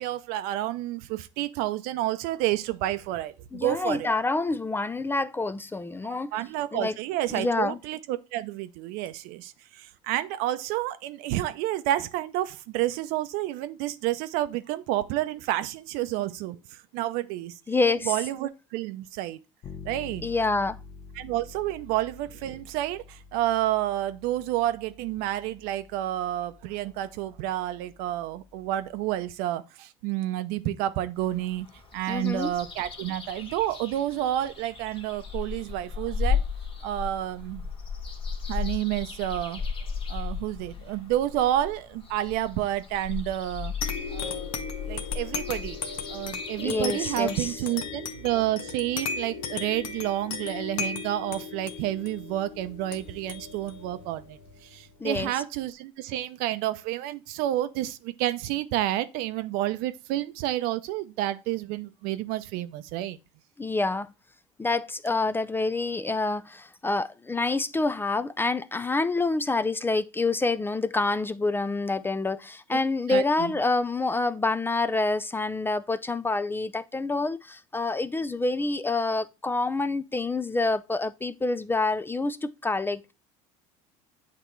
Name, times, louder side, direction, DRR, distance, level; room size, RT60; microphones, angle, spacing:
voice 1, 0.0-4.1 6.3-17.6 18.0-19.4 19.8-20.3 21.2-31.7 31.9-36.4 36.8-37.6 38.5-39.6 40.1-43.7 44.1-44.5 44.9-45.8 46.1-63.2 73.1-73.5, right 14 dB, 70° right, 0.6 m, -30 dB
voice 2, 3.5-6.3 6.7-7.0 7.3-7.8 17.7-18.1 20.2-20.8 32.1-32.5 46.6-47.5 55.0-55.3 63.6-64.1 64.6-83.1, left 3 dB, 15° left, 0.4 m, -27 dB
Bass guitar, 19.6-29.4, left 4 dB, 50° left, 1.1 m, -48 dB
sound 1, 31.2-47.5, left 6 dB, 30° left, 1.5 m, -35 dB
sound 2, 43.8-54.9, left 5 dB, 90° left, 1.0 m, -36 dB
8.3 x 2.9 x 4.5 m
supercardioid pair, 90°, 16 cm